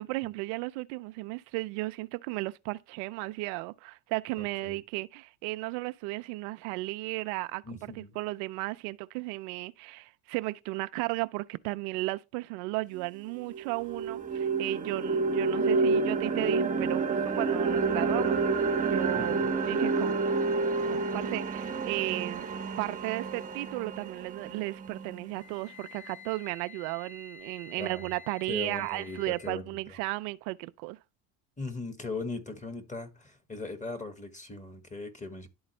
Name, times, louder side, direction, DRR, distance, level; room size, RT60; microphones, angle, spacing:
voice 1, 0.0-18.4 18.9-20.2 20.8-22.5 22.8-31.0, right 21 dB, 80° right, 0.5 m, -35 dB
voice 2, 4.4-4.8 7.6-8.2 19.1-19.5 27.8-28.1 28.5-29.8 31.6-35.5, left 3 dB, 15° left, 1.7 m, -39 dB
sound 1, 13.0-13.1 13.5-25.5, right 4 dB, 20° right, 1.0 m, -29 dB
Wind instrument woodwind instrument, 25.4-29.6, left 7 dB, 45° left, 4.6 m, -50 dB
11.0 x 4.0 x 3.2 m
supercardioid pair, 100°, 43 cm